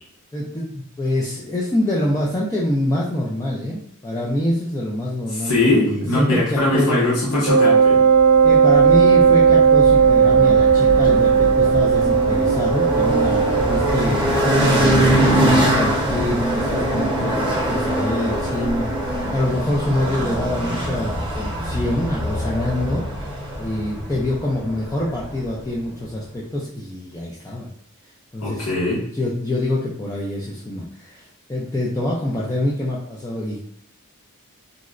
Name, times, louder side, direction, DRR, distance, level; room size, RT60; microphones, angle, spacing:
voice 1, 0.3-7.1 8.4-14.3 14.7-27.7 28.3-28.7 29.1-33.6, left 1 dB, 15° left, -6 dB, 0.3 m, -25 dB
voice 2, 5.3-8.0 28.4-29.0, left 2 dB, 90° left, -6 dB, 0.9 m, -20 dB
Wind instrument woodwind instrument, 7.4-14.1, right 6 dB, 70° right, 0.4 m, -15 dB
sound 1, 8.1-25.6, right 1 dB, 25° right, 0.7 m, -23 dB
3.8 x 2.1 x 2.4 m, 0.69 s
head